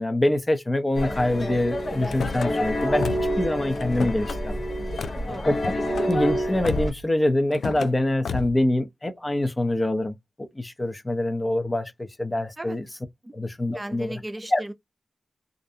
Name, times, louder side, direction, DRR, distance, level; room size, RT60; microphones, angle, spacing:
voice 1, 0.0-4.6 5.5-5.7 6.1-12.9 13.3-14.2 14.5-14.6, left 1 dB, 25° left, 0.7 m, -25 dB
sound 1, 0.9-6.9, equal, 65° left, 1.0 m, -28 dB
Car / Slam, 2.0-2.5 3.0-3.4 3.7-4.4 5.0-5.2 5.6-6.1 6.6-7.1 7.5-7.9 8.2-8.6, left 5 dB, 80° left, 0.3 m, -32 dB
voice 2, 13.7-14.7, right 1 dB, 20° right, 0.5 m, -36 dB
2.5 x 2.1 x 2.6 m
cardioid pair, 45°, 0 cm